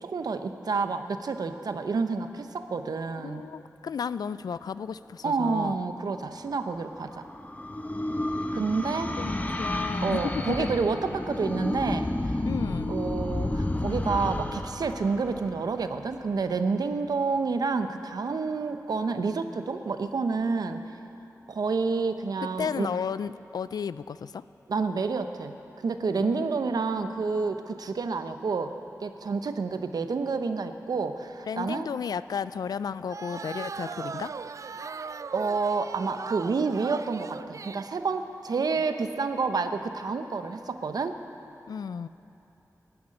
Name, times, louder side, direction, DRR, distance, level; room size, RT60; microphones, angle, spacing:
voice 1, 0.0-3.4 5.2-7.3 8.5-9.1 10.0-12.1 12.9-20.8 21.5-22.9 24.7-25.6 25.8-28.7 29.0-31.9 34.9-35.0 35.3-41.2, right 4 dB, 80° right, 8 dB, 0.8 m, -29 dB
voice 2, 3.2-5.7 9.2-9.3 9.6-10.7 12.5-13.0 22.6-24.4 26.2-26.5 31.5-34.3 41.7-42.1, left 6 dB, 85° left, 16 dB, 0.3 m, -33 dB
sound 1, 6.6-16.1, left 1 dB, 25° left, 1.0 m, -31 dB
sound 2, 33.1-37.9, right 5 dB, 55° right, 0.3 m, -39 dB
13.0 x 9.6 x 9.8 m, 2.9 s
cardioid pair, 55°, 7 cm